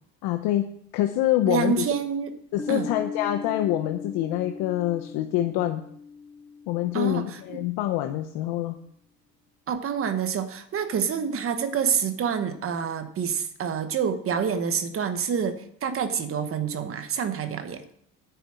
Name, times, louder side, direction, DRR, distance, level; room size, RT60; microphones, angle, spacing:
voice 1, 0.2-1.9 2.5-5.8 6.7-8.7, left 13 dB, 80° left, 6 dB, 0.9 m, -26 dB
voice 2, 1.5-2.3 2.7-2.9 6.9-7.6 9.7-17.8, right 7 dB, 35° right, 10 dB, 1.1 m, -27 dB
Piano, 2.6-8.0, left 5 dB, 5° left, 0.6 m, -39 dB
9.5 x 6.9 x 7.6 m, 0.68 s
cardioid pair, 140°, 37 cm